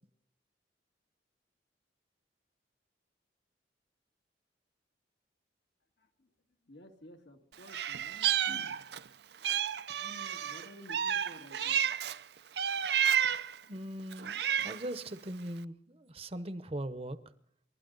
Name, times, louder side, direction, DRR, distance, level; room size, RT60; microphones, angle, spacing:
voice 1, 6.0-6.3 6.6-8.8 9.4-9.6 9.9-12.0, left 1 dB, 75° left, 2.0 m, -53 dB
Meow, 7.7-9.1 9.4-12.2 12.6-13.6 14.1-14.9, right 9 dB, 65° right, 0.5 m, -31 dB
voice 2, 13.7-17.2, right 1 dB, 35° right, 0.9 m, -40 dB
29.0 x 12.5 x 4.0 m
head